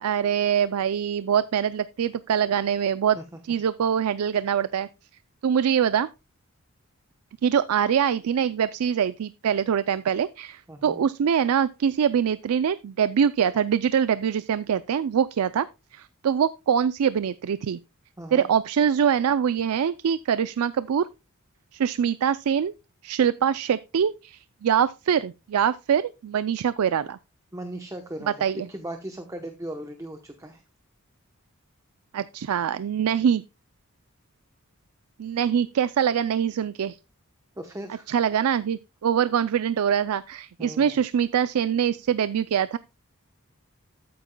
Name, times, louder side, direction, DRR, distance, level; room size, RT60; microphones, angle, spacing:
voice 1, 0.0-3.2 3.5-4.9 5.4-6.1 7.4-15.7 15.9-17.8 18.3-21.1 21.7-22.7 23.0-27.2 28.4-28.7 32.1-33.4 35.2-37.0 38.1-42.8, right 8 dB, 85° right, 0.4 m, -24 dB
voice 2, 10.7-11.0 18.2-18.5 27.5-30.6 37.6-38.1 40.6-41.0, right 1 dB, 15° right, 0.9 m, -38 dB
13.5 x 8.7 x 2.2 m
head